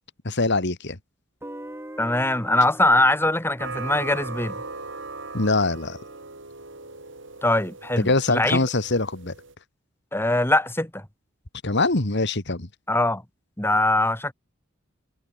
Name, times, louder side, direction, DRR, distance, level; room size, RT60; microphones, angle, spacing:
voice 1, 0.2-1.0 5.3-6.0 8.0-9.3 11.6-12.7, left 2 dB, 60° left, 2.4 m, -23 dB
Guitar, 1.4-6.3, right 1 dB, 10° right, 7.2 m, -44 dB
voice 2, 2.0-4.6 7.4-8.6 10.1-11.0 12.9-13.2 13.6-14.3, left 1 dB, 10° left, 3.6 m, -22 dB
sound 1, 3.6-9.5, right 3 dB, 65° right, 7.6 m, -38 dB
head